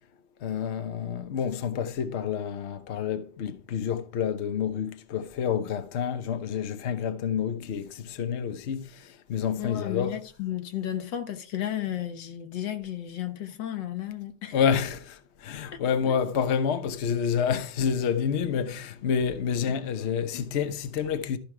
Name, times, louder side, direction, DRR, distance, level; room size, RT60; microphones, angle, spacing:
voice 1, 0.4-8.9 9.3-10.2 14.5-21.4, left 7 dB, 50° left, 0.9 m, -28 dB
voice 2, 9.6-14.5, left 11 dB, 85° left, 1.7 m, -33 dB
13.5 x 5.2 x 4.7 m
omnidirectional pair, 1.9 m